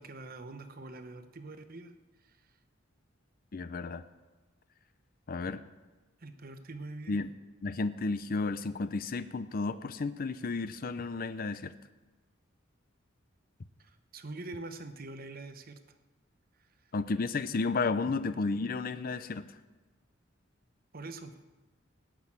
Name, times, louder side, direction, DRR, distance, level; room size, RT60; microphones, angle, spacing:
voice 1, 0.0-1.9 2.3-2.4 6.2-7.2 13.8-15.8 20.9-21.4, right 2 dB, 50° right, 9 dB, 0.9 m, -44 dB
voice 2, 3.5-4.0 5.3-5.6 7.1-7.3 7.6-11.7 16.9-19.4, left 3 dB, 45° left, 12 dB, 0.5 m, -32 dB
18.0 x 6.3 x 8.7 m, 1.2 s
head